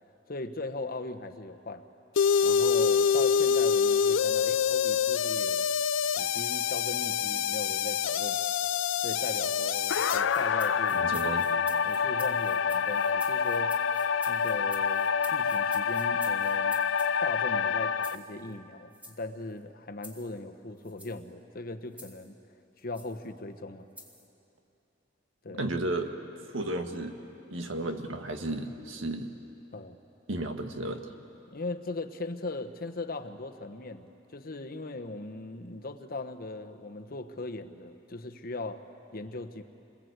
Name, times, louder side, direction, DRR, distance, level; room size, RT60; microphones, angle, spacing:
voice 1, 0.3-1.9 2.4-5.6 6.2-8.4 9.0-11.1 11.8-13.8 14.3-16.8 17.2-22.4 22.8-23.9 25.4-25.6 29.7-30.0 31.5-38.8 39.1-39.6, left 2 dB, 50° left, 7 dB, 1.1 m, -39 dB
sound 1, 2.2-18.2, left 6 dB, 75° left, 0.5 m, -26 dB
sound 2, 9.8-17.1 18.0-18.3 18.9-19.2 20.0-20.3 20.8-21.2 22.0-22.3 22.9-23.1 24.0-24.3, left 1 dB, 10° right, 2.2 m, -48 dB
voice 2, 10.9-11.5 25.5-26.1 26.5-27.2 27.5-29.3 30.3-31.1, right 2 dB, 80° right, 5 dB, 1.7 m, -33 dB
28.0 x 21.5 x 8.1 m, 2.8 s
head